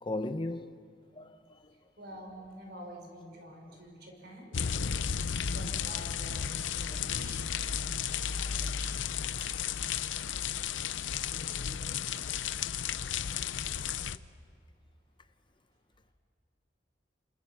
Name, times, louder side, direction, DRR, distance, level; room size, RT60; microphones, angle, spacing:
voice 1, 0.0-0.7 1.1-1.7 3.7-3.8 4.8-4.9 6.9-7.0 8.6-8.7 9.4-9.5 11.3-12.3, left 2 dB, 25° left, 0.7 m, -39 dB
voice 2, 2.0-4.6 5.4-10.1, equal, 60° right, 5.7 m, -48 dB
sound 1, 4.5-14.2, left 8 dB, 85° left, 0.6 m, -33 dB
26.5 x 26.5 x 7.2 m
head